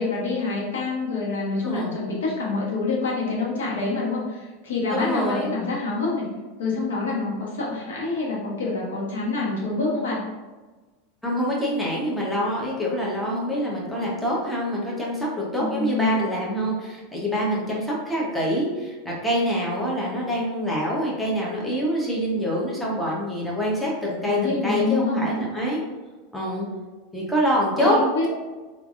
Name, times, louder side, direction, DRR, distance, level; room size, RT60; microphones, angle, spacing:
voice 1, 0.0-6.2 6.6-10.2 15.6-16.1 17.7-17.8 24.2-25.3 27.9-28.3, left 3 dB, 90° left, -5 dB, 1.1 m, -26 dB
voice 2, 4.9-5.6 11.2-25.8 26.3-26.7 27.1-28.0, equal, 5° left, -5 dB, 0.8 m, -25 dB
3.2 x 2.5 x 2.4 m, 1.3 s
supercardioid pair, 120°, 0 cm